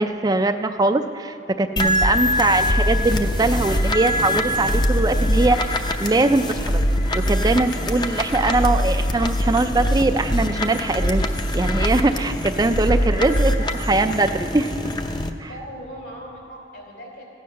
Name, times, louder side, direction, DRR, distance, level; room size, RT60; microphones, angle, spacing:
voice 1, 0.0-5.6 6.0-6.8 7.1-13.5 13.9-14.3 14.5-14.7 15.4-15.5, right 2 dB, 20° right, 8 dB, 0.4 m, -21 dB
sound 1, 1.8-15.3, equal, 25° left, 0.6 m, -22 dB
voice 2, 13.4-14.1 15.5-17.2, equal, 75° left, -1 dB, 3.7 m, -39 dB
15.5 x 9.5 x 6.4 m, 2.8 s
head